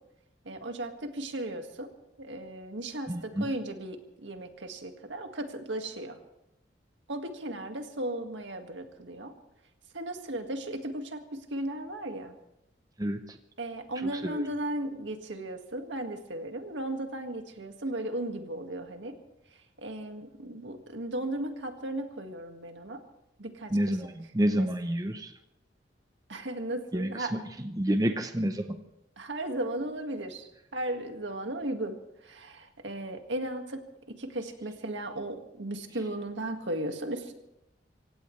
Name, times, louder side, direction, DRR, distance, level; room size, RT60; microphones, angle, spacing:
voice 1, 0.5-1.9 2.2-3.1 3.4-6.2 7.1-9.3 9.9-12.3 13.6-19.2 19.8-23.0 23.4-23.7 24.5-24.7 26.3-27.3 29.2-30.5 30.7-32.0 32.3-33.8 34.2-37.3, right 1 dB, 85° right, 5 dB, 1.9 m, -36 dB
voice 2, 3.1-3.5 13.0-13.4 14.0-14.4 23.7-25.3 26.9-28.8, right 1 dB, 20° right, 7 dB, 0.8 m, -29 dB
26.0 x 16.5 x 3.2 m, 0.86 s
head